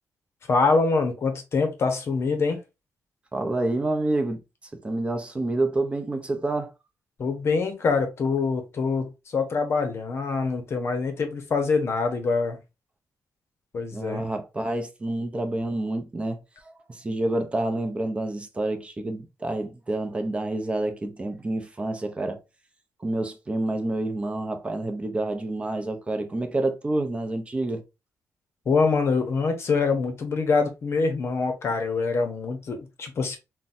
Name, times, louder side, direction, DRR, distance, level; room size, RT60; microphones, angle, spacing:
voice 1, 0.5-2.6 7.2-12.6 13.7-14.2 28.7-33.4, left 4 dB, 45° left, 0.8 m, -25 dB
voice 2, 3.3-4.4 4.7-6.7 13.9-22.4 23.0-27.8, right 2 dB, 20° right, 0.6 m, -28 dB
3.8 x 2.2 x 2.6 m
cardioid pair, 135°, 6 cm